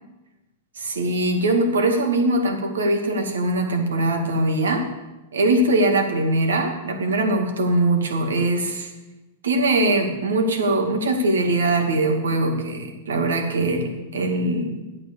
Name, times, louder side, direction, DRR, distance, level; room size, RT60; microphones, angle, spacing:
voice 1, 0.8-4.9 5.3-8.9 9.4-14.7, right 2 dB, 90° right, 3 dB, 2.3 m, -21 dB
11.5 x 8.4 x 7.0 m, 1.1 s
hypercardioid pair, 120°, 0 cm